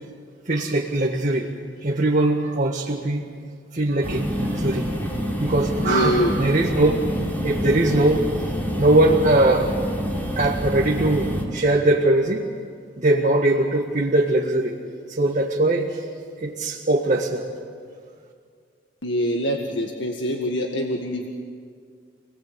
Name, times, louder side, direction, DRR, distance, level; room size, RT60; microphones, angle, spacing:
voice 1, 0.5-1.5 1.8-3.3 3.7-4.9 5.4-7.0 7.4-8.3 8.8-9.7 10.4-12.5 13.0-14.8 15.2-16.0 16.4-17.4, right 2 dB, 45° right, -1 dB, 1.8 m, -21 dB
sound 1, 4.0-11.4, equal, 10° left, 3.9 m, -27 dB
voice 2, 5.8-6.3 19.0-21.3, equal, 70° left, 2 dB, 1.8 m, -24 dB
28.0 x 20.0 x 8.2 m, 2.1 s
head